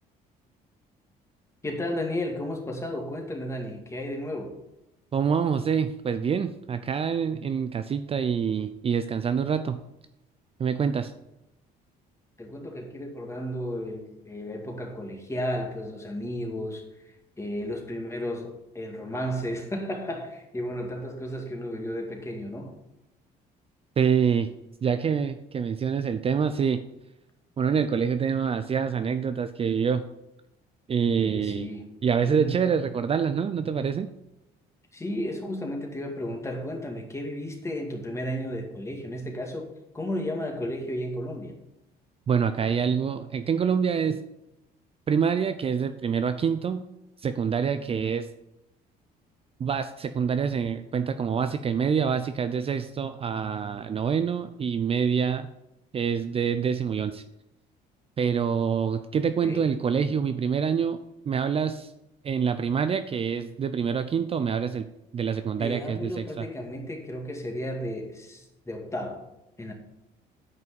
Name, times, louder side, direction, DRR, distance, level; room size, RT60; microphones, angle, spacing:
voice 1, 1.6-4.5 12.4-22.7 31.2-31.9 32.2-32.6 34.9-41.6 59.4-59.7 65.6-69.2 69.6-69.7, equal, 15° left, 2 dB, 2.3 m, -33 dB
voice 2, 5.1-9.8 10.6-11.1 24.0-24.5 24.8-26.8 27.6-30.0 30.9-31.7 32.0-34.1 42.3-44.2 45.1-46.8 47.2-48.3 49.6-55.5 55.9-57.2 58.2-61.0 61.3-61.9 62.2-64.9 65.1-66.5, right 7 dB, 35° right, 10 dB, 0.5 m, -26 dB
9.5 x 5.5 x 7.1 m, 0.90 s
cardioid pair, 110°, 17 cm